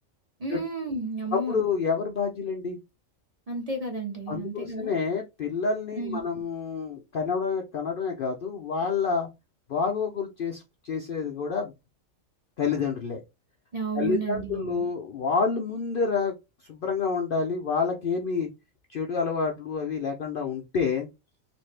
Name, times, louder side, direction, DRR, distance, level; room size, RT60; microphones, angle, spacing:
voice 1, 0.4-1.6 3.5-4.9 6.0-6.2 13.7-14.9, right 3 dB, 30° right, 0.9 m, -32 dB
voice 2, 1.3-2.8 4.3-9.3 9.7-11.7 12.6-13.2 14.0-16.3 16.7-18.5 18.9-21.1, left 5 dB, 60° left, 0.6 m, -28 dB
3.4 x 2.6 x 3.2 m
omnidirectional pair, 1.4 m